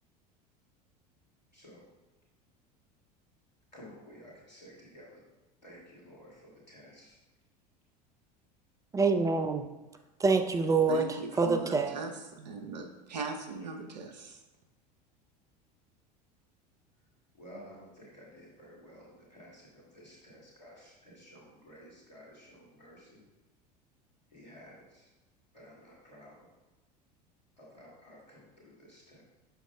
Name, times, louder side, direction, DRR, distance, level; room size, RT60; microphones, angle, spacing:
voice 1, 1.5-1.9 3.7-5.2 5.6-7.2 11.3-11.4 17.3-23.2 24.3-25.1 25.5-26.5 27.6-29.2, equal, 85° left, -5 dB, 2.3 m, -53 dB
voice 2, 8.9-9.7 10.2-11.9, right 4 dB, 15° right, 7 dB, 0.6 m, -26 dB
voice 3, 10.9-12.1 12.4-12.9 13.1-14.4, right 4 dB, 75° right, 4 dB, 0.9 m, -39 dB
8.0 x 6.3 x 2.3 m, 1.1 s
figure-of-eight pair, 75°, 21 cm